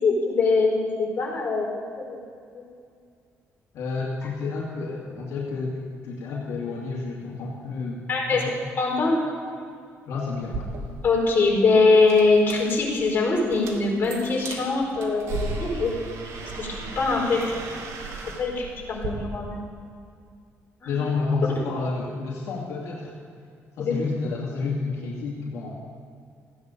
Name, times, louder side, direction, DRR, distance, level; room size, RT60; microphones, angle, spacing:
voice 1, 0.0-1.7 1.9-2.2 2.5-2.6 8.1-8.4 8.8-9.2 11.0-15.9 16.5-16.7 16.9-17.5 18.4-19.5 20.8-20.9 23.8-23.9, left 3 dB, 40° left, -3 dB, 4.6 m, -22 dB
voice 2, 3.7-8.6 10.1-10.7 20.8-23.1 23.8-25.8, left 4 dB, 80° left, -4 dB, 2.5 m, -30 dB
sound 1, 10.4-19.1, right 3 dB, 75° right, 2.5 m, -36 dB
15.5 x 9.8 x 6.9 m, 2.3 s
cardioid pair, 120°, 5 cm